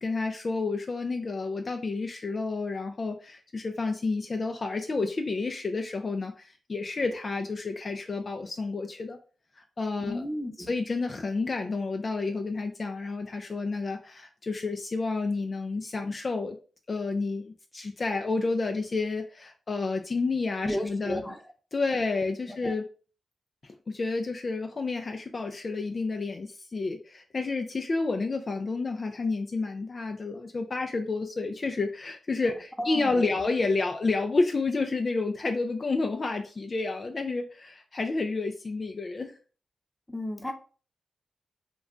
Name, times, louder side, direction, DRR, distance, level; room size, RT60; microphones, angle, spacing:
voice 1, 0.0-9.2 9.6-10.3 10.6-16.6 16.9-21.2 21.7-22.9 23.6-39.4, left 3 dB, 50° left, 4 dB, 0.3 m, -30 dB
voice 2, 10.0-10.7 20.6-21.4 22.5-22.7 32.8-33.4 40.1-40.5, left 1 dB, 10° left, 4 dB, 0.8 m, -33 dB
2.3 x 2.2 x 3.6 m, 0.38 s
supercardioid pair, 40°, 0 cm